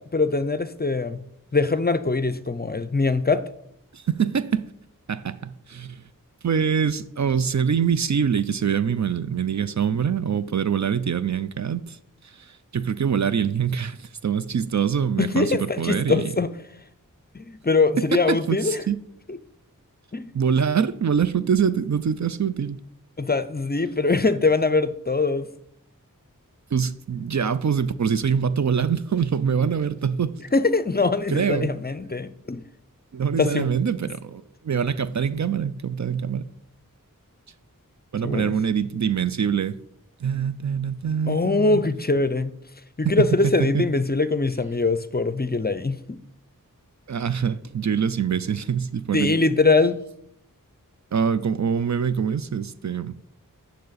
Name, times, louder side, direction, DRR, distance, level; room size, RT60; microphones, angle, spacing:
voice 1, 0.1-1.2 1.5-3.4 15.2-16.5 17.3-18.8 19.3-19.4 20.1-20.3 23.2-25.5 30.5-32.6 33.4-33.7 38.2-38.5 41.3-42.5 43.0-46.2 49.1-50.0, left 3 dB, 30° left, 0.5 m, -22 dB
voice 2, 3.9-4.7 5.1-6.0 6.4-12.0 12.2-16.3 18.0-19.0 20.3-22.8 26.7-30.4 31.3-31.7 33.1-36.5 38.1-39.8 40.2-41.8 43.0-43.3 43.6-43.9 47.1-49.4 51.1-53.2, right 7 dB, 55° right, 0.4 m, -24 dB
9.3 x 6.6 x 4.0 m
wide cardioid pair, 45°, 34 cm